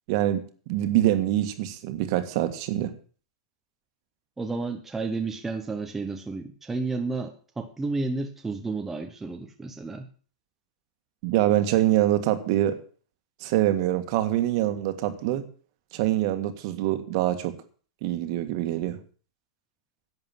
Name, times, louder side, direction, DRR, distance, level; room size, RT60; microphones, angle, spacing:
voice 1, 0.1-0.4 0.7-2.9 11.2-12.8 13.4-15.4 15.9-17.6 18.0-19.0, right 13 dB, 45° right, 9 dB, 1.8 m, -24 dB
voice 2, 4.4-10.1, right 3 dB, 5° right, 4 dB, 0.9 m, -31 dB
11.0 x 8.0 x 7.5 m, 0.41 s
supercardioid pair, 165°, 4 cm